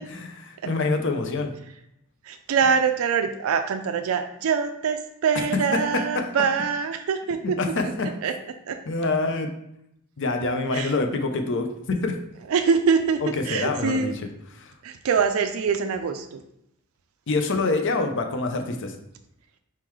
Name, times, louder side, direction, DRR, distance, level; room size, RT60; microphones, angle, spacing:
voice 1, 0.1-1.5 5.3-5.6 5.9-6.2 7.6-8.1 8.9-9.5 10.2-12.1 13.3-14.1 14.5-14.7 17.3-18.9, left 3 dB, 60° left, 6 dB, 0.6 m, -26 dB
voice 2, 2.2-7.6 7.8-7.9 8.2-8.3 8.7-8.8 10.7-10.9 12.5-14.2 14.8-16.4, right 6 dB, 80° right, 8 dB, 0.4 m, -24 dB
4.3 x 3.8 x 3.1 m, 0.79 s
head